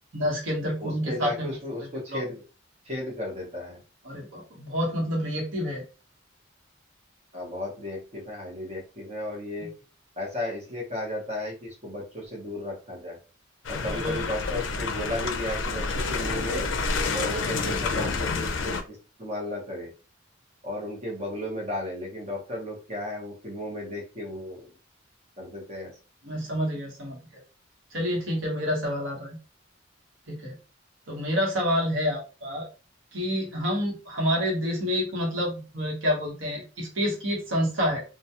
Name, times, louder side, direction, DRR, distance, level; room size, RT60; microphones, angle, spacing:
voice 1, 0.1-1.5 2.1-2.2 4.0-5.8 9.6-9.7 13.8-14.3 26.2-27.2 27.9-29.4 30.3-30.5 31.1-32.7 33.1-38.0, equal, 80° right, -1 dB, 1.0 m, -28 dB
voice 2, 0.8-2.4 2.8-3.8 7.3-9.7 10.2-13.2 13.7-16.7 17.1-19.9 20.6-24.7 25.4-25.9, left 1 dB, 35° right, -2 dB, 0.8 m, -34 dB
sound 1, 13.6-18.8, left 4 dB, 65° left, 0.4 m, -29 dB
2.2 x 2.2 x 2.8 m, 0.33 s
head